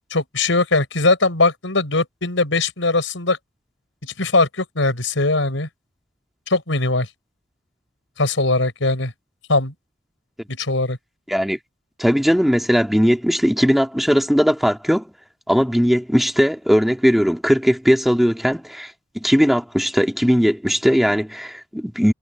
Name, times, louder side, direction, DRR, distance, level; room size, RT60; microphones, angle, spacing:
voice 1, 0.1-3.4 4.0-5.7 6.5-7.1 8.2-9.1 9.5-9.7 10.5-11.0, left 3 dB, 80° left, 4.8 m, -20 dB
voice 2, 11.3-11.6 12.0-15.1 15.5-22.1, equal, ahead, 1.9 m, -18 dB
head